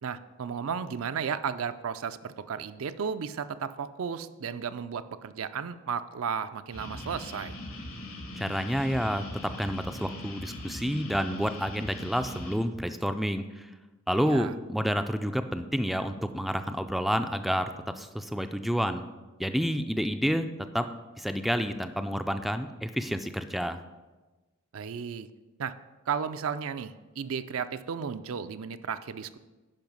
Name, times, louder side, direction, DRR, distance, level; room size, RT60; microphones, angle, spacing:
voice 1, 0.0-7.6 14.3-14.5 24.7-25.3 25.6-25.7 26.1-29.4, right 6 dB, 70° right, 11 dB, 0.4 m, -34 dB
sound 1, 6.7-12.5, left 1 dB, 80° left, 1.9 m, -41 dB
voice 2, 8.3-13.7 14.1-19.0 19.4-20.5 20.7-20.9 21.2-23.8, equal, ahead, 8 dB, 0.3 m, -29 dB
10.5 x 5.0 x 5.4 m, 1.2 s
head